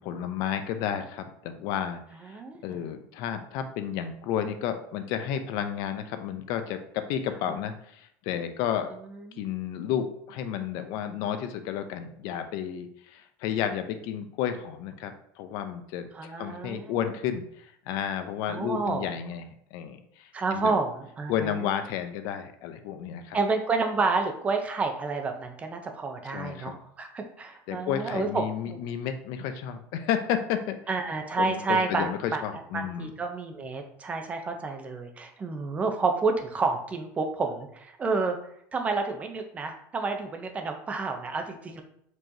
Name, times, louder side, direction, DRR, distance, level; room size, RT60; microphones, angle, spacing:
voice 1, 0.0-2.0 2.6-8.9 9.4-20.7 21.3-23.4 26.3-26.8 27.7-30.8 31.4-33.1, left 9 dB, 60° left, 8 dB, 0.5 m, -32 dB
voice 2, 2.2-2.8 7.4-7.6 9.2-9.4 16.1-17.1 18.5-19.1 20.3-21.7 23.3-28.8 30.9-38.4 38.7-41.8, right 4 dB, 20° right, 5 dB, 0.6 m, -30 dB
4.5 x 3.0 x 2.7 m, 0.70 s
cardioid pair, 145°, 7 cm